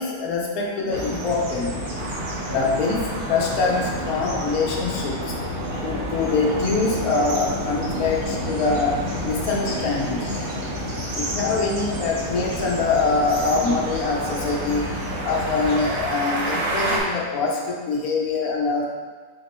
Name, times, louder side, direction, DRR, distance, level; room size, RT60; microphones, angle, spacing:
voice 1, 0.0-1.8 2.5-5.4 5.8-10.4 11.1-14.9 15.2-18.8, left 4 dB, 70° left, -2 dB, 1.1 m, -24 dB
sound 1, 0.9-16.0, equal, 55° right, 0.6 m, -30 dB
sound 2, 2.0-17.0, right 2 dB, 75° right, 1.3 m, -34 dB
3.5 x 2.9 x 4.1 m, 1.5 s
omnidirectional pair, 1.8 m